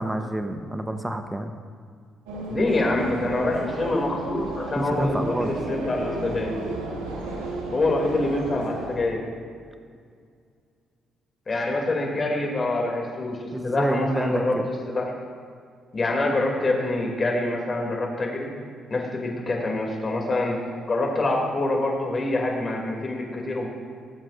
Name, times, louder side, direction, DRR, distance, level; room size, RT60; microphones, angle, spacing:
voice 1, 0.0-1.5 4.8-5.6 13.5-14.7, right 1 dB, 15° right, 6 dB, 0.9 m, -28 dB
sound 1, 2.3-9.0, right 2 dB, 90° right, 1.3 m, -33 dB
voice 2, 2.5-6.6 7.7-9.2 11.5-15.1 15.9-18.5 18.9-23.7, left 2 dB, 40° left, 0 dB, 2.6 m, -26 dB
18.5 x 7.5 x 2.5 m, 2.1 s
hypercardioid pair, 55°, 0 cm